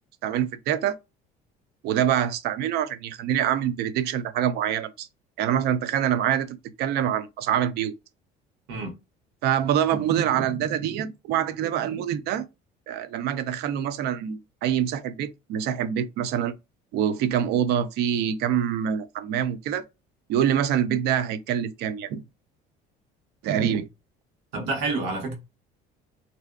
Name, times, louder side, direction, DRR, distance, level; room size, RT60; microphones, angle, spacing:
voice 1, 0.2-1.0 1.8-5.1 5.4-7.9 9.4-12.4 12.9-16.5 16.9-19.9 20.3-22.2 23.4-23.9, right 9 dB, 65° right, 0.4 m, -25 dB
voice 2, 24.5-25.3, right 3 dB, 90° right, 1.2 m, -28 dB
2.6 x 2.2 x 2.3 m
cardioid pair, 120°, 18 cm